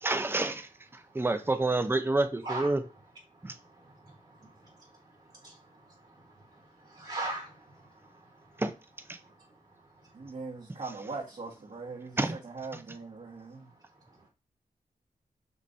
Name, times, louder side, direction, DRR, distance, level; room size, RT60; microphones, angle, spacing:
voice 1, 0.0-2.8 3.4-3.5 8.6-8.7 9.1-9.2 12.2-12.4, right 2 dB, 15° right, 0.6 m, -28 dB
voice 2, 4.4-4.9 5.4-5.6 6.5-8.2, right 2 dB, 35° right, 1.4 m, -39 dB
voice 3, 10.1-13.7, right 4 dB, 60° right, 1.3 m, -41 dB
5.3 x 3.0 x 2.6 m
cardioid pair, 55°, 14 cm